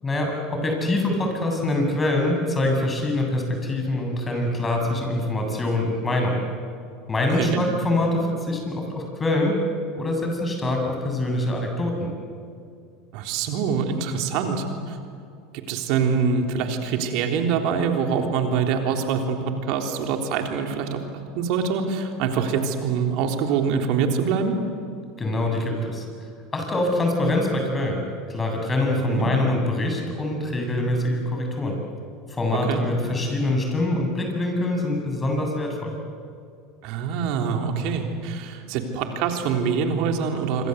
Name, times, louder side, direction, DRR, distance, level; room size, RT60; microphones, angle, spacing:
voice 1, 0.0-6.4 7.1-9.6 10.0-12.1 25.2-26.0 26.5-28.0 28.3-31.8 32.3-36.0, left 1 dB, 20° left, 2 dB, 7.7 m, -24 dB
voice 2, 7.3-7.6 13.1-15.0 15.5-19.4 19.6-21.0 21.4-24.6 29.0-29.3 32.7-32.8 36.8-40.7, right 6 dB, 65° right, 4 dB, 3.6 m, -24 dB
26.5 x 25.0 x 8.1 m, 2.4 s
hypercardioid pair, 90°, 0 cm